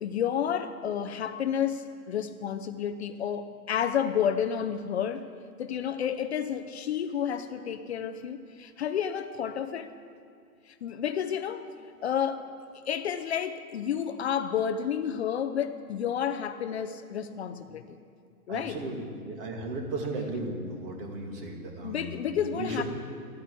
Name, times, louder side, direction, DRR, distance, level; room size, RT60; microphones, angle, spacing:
voice 1, 0.0-5.3 5.6-9.9 10.7-11.7 12.0-12.5 12.9-18.0 18.5-18.8 21.8-22.8, left 8 dB, 45° left, 10 dB, 0.7 m, -30 dB
voice 2, 18.5-22.2 22.5-22.8, right 2 dB, 35° right, 2 dB, 2.3 m, -35 dB
14.0 x 9.0 x 7.7 m, 2.4 s
hypercardioid pair, 155°, 45 cm